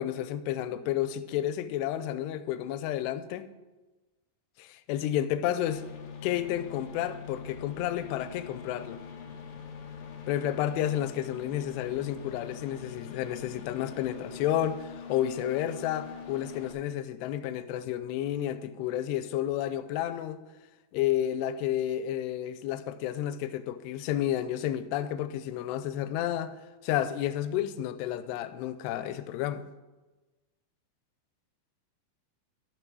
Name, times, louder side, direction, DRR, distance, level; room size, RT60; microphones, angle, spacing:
voice 1, 0.0-3.5 4.6-5.8 6.2-9.0 10.3-20.4 20.9-26.6 26.8-29.7, left 11 dB, 90° left, 2.7 m, -31 dB
sound 1, 5.7-16.7, left 6 dB, 65° left, 1.7 m, -43 dB
12.0 x 6.4 x 6.1 m
omnidirectional pair, 4.7 m